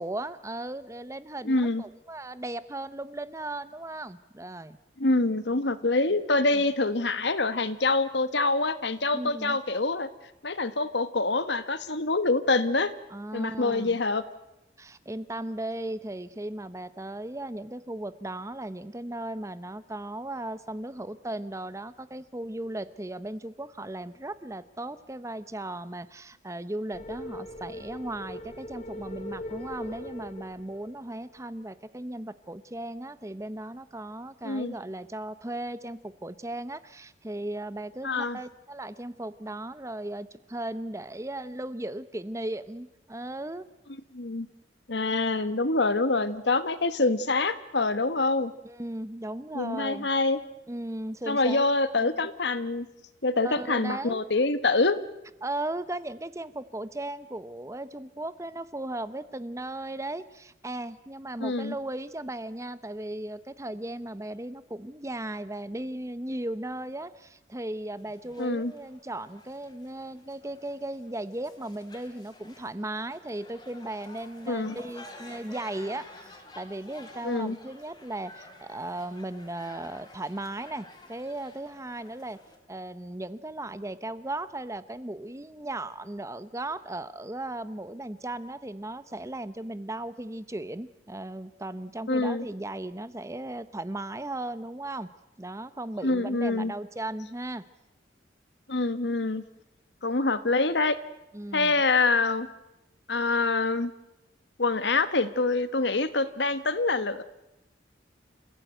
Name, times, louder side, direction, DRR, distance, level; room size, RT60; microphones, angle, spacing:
voice 1, 0.0-4.8 6.5-6.6 9.1-9.6 13.1-14.0 14.8-43.7 48.6-50.1 50.7-51.6 52.0-52.1 53.4-54.3 55.4-82.4 82.7-95.1 95.4-97.6 101.3-101.7, right 1 dB, 15° right, 14 dB, 0.8 m, -36 dB
voice 2, 1.4-1.8 5.0-10.1 10.4-12.9 13.3-14.2 34.4-34.8 38.0-38.4 44.1-44.5 44.9-48.5 49.5-50.4 51.3-52.9 53.2-55.0 61.4-61.7 68.4-68.7 74.5-74.8 77.2-77.6 92.1-92.5 96.0-96.7 98.7-99.4 100.0-101.0 101.5-102.5 103.1-103.9 104.6-107.2, left 3 dB, 70° left, 13 dB, 1.5 m, -25 dB
sound 1, 26.9-31.3, left 1 dB, 35° left, 2.8 m, -41 dB
sound 2, 68.0-82.6, left 2 dB, 20° left, 3.9 m, -51 dB
28.5 x 16.0 x 9.1 m, 0.91 s
head